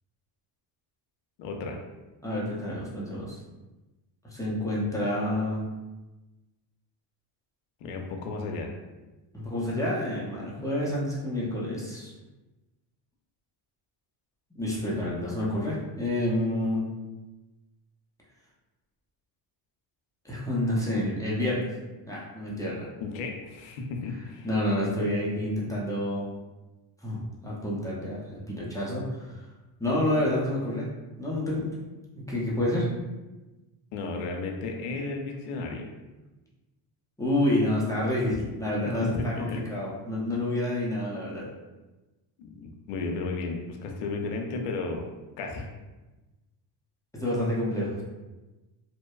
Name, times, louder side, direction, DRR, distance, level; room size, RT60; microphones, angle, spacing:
voice 1, 1.4-1.8 7.8-8.7 23.0-24.5 33.9-35.9 39.1-39.6 42.4-45.1 45.4-45.7, left 3 dB, 85° left, 2 dB, 0.6 m, -33 dB
voice 2, 2.2-3.4 4.3-5.6 9.3-12.1 14.5-16.8 20.2-21.7 22.0-22.9 24.4-26.3 27.0-29.4 29.8-30.9 31.2-31.7 32.3-32.9 37.2-41.5 47.1-48.0, left 1 dB, 5° left, -7 dB, 0.5 m, -28 dB
2.6 x 2.1 x 2.3 m, 1.1 s
cardioid pair, 90°, 50 cm